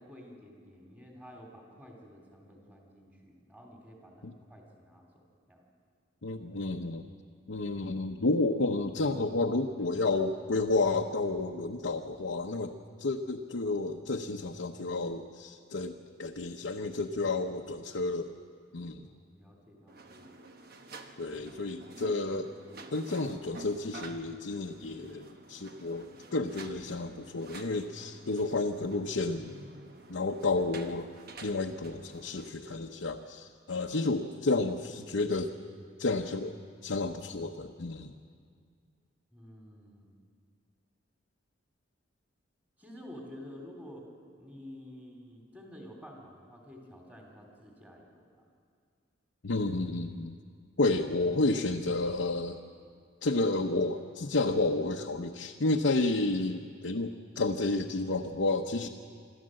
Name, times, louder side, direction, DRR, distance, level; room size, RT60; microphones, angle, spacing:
voice 1, 0.0-5.2 5.5-5.7 19.0-20.4 21.5-21.6 39.3-40.2 42.8-44.0 44.4-48.4, equal, 10° right, 0 dB, 3.0 m, -50 dB
voice 2, 6.2-7.1 7.5-18.3 18.7-19.0 21.2-22.5 22.9-29.5 30.1-31.1 31.4-35.5 36.0-38.2 49.4-50.3 50.8-52.6 53.2-58.9, left 2 dB, 75° left, 1 dB, 0.8 m, -31 dB
sound 1, 19.9-32.5, right 2 dB, 50° right, 1.1 m, -50 dB
26.0 x 13.0 x 7.6 m, 2.1 s
head